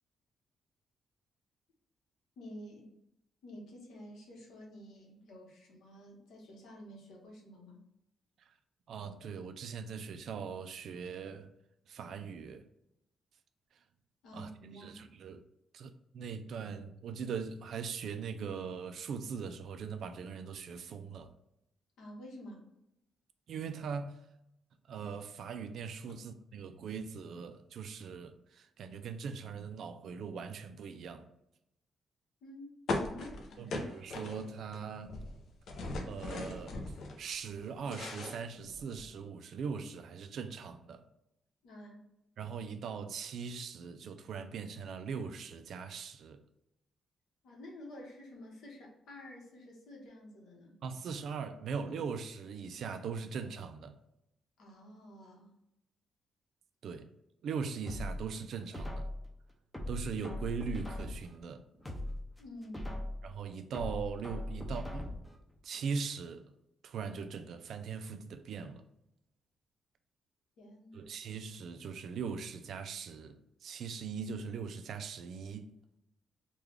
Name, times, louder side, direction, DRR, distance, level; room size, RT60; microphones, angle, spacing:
voice 1, 2.4-2.9 3.4-7.8 14.2-15.1 22.0-22.7 32.4-33.8 41.6-42.1 47.4-50.8 54.6-55.5 62.4-63.0 70.6-71.1, left 1 dB, 80° left, 1.2 m, -50 dB
voice 2, 8.9-11.5 11.9-12.6 14.3-15.4 15.7-21.4 23.5-24.2 24.9-31.3 33.6-35.2 36.1-36.8 37.2-41.1 42.4-46.4 50.8-54.0 56.8-57.1 57.4-59.1 59.9-61.7 63.2-65.1 65.6-66.4 66.8-68.8 70.9-75.7, right 6 dB, 60° right, 0.3 m, -40 dB
sound 1, 32.9-34.8 35.0-37.2 37.6-39.1, left 2 dB, 60° left, 0.6 m, -39 dB
sound 2, 57.9-59.3 59.7-61.4 61.7-63.3 63.7-65.4 65.7-65.8, left 1 dB, 5° left, 0.5 m, -40 dB
3.6 x 2.3 x 3.2 m
wide cardioid pair, 170°, 0 cm